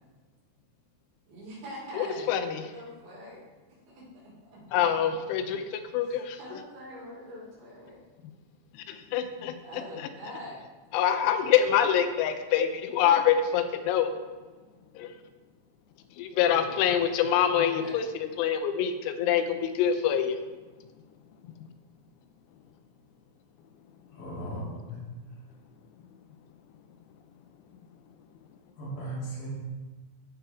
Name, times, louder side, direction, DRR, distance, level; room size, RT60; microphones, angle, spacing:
voice 1, 1.3-3.4 3.9-4.1 4.4-4.6 6.1-8.0 9.6-10.6 16.4-16.9 17.4-18.0, equal, 85° right, -7 dB, 5.8 m, -44 dB
voice 2, 2.0-2.6 4.7-6.4 8.9-9.5 10.9-14.1 15.0-15.1 16.2-20.4, left 9 dB, 90° left, 8 dB, 3.1 m, -25 dB
voice 3, 24.2-25.0 28.8-29.5, right 1 dB, 70° left, -7 dB, 4.9 m, -36 dB
15.0 x 5.1 x 3.5 m, 1.3 s
omnidirectional pair, 5.4 m